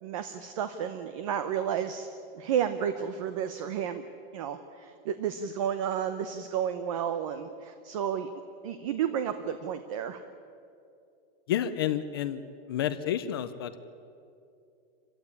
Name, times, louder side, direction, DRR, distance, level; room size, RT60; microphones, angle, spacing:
voice 1, 0.0-2.1 2.3-4.1 4.3-8.3 8.6-10.2, right 8 dB, 35° right, 10 dB, 0.9 m, -31 dB
voice 2, 11.5-13.8, left 10 dB, 25° left, 11 dB, 0.5 m, -30 dB
27.0 x 15.5 x 9.8 m, 2.6 s
supercardioid pair, 180°, 31 cm